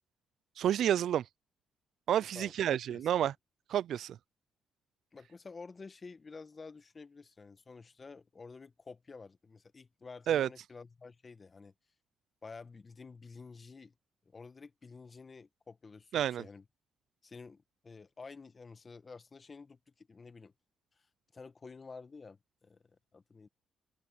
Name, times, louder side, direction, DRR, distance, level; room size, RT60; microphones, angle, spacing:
voice 1, 0.6-1.3 2.1-3.3 3.7-4.2 10.3-10.5 16.1-16.4, right 10 dB, 70° right, 0.4 m, -29 dB
voice 2, 2.3-3.1 5.1-11.7 12.4-13.9 14.2-16.6 17.2-20.5 21.0-21.1 21.3-23.5, left 4 dB, 30° left, 1.3 m, -51 dB
cardioid pair, 90°, 0 cm